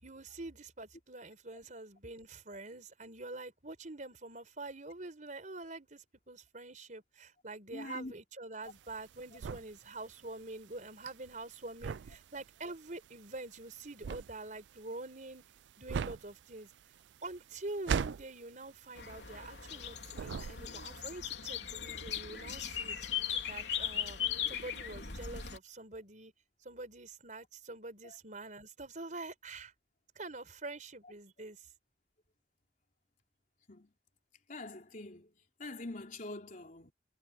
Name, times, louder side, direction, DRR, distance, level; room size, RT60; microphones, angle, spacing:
voice 1, 0.0-15.4 15.8-16.7 17.2-23.0 23.5-24.2 24.5-26.3 26.6-29.7 30.1-31.7, right 2 dB, 45° right, 4.5 m, -46 dB
voice 2, 7.7-8.1 28.0-28.2 33.7-33.9 34.5-35.3 35.6-36.9, left 2 dB, 50° left, 3.6 m, -44 dB
sound 1, 8.6-19.8 20.1-21.0, right 6 dB, 85° right, 0.4 m, -40 dB
sound 2, 19.0-25.6, left 9 dB, 75° left, 3.4 m, -38 dB
head